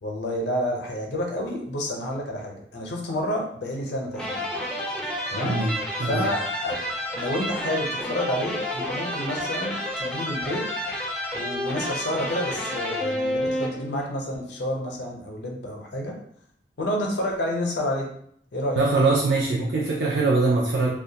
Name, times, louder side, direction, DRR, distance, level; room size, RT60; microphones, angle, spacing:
voice 1, 0.0-4.4 5.3-5.6 6.0-6.8 7.1-10.7 11.4-16.2 16.8-18.1 18.5-18.8, left 1 dB, 75° left, 0 dB, 0.6 m, -29 dB
sound 1, 4.1-14.1, left 1 dB, 5° left, 0.3 m, -30 dB
voice 2, 18.8-20.9, right 3 dB, 70° right, -4 dB, 0.4 m, -22 dB
2.2 x 2.1 x 2.7 m, 0.66 s
head